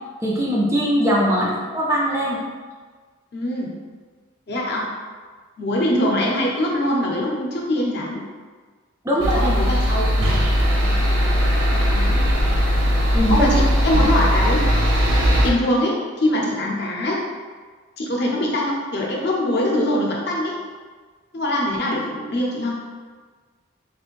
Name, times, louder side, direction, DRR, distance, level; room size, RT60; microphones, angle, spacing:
voice 1, 0.2-2.4 9.0-9.5 13.1-13.5, equal, 15° right, -3 dB, 0.3 m, -21 dB
voice 2, 3.3-3.7 4.5-4.8 5.6-8.2 9.1-10.3 11.9-12.1 12.8-14.6 15.1-17.2 18.0-20.6 21.3-22.8, left 1 dB, 50° left, -2 dB, 0.6 m, -23 dB
sound 1, 9.2-15.5, equal, 85° right, 0.6 m, -19 dB
3.2 x 2.5 x 3.0 m, 1.5 s
head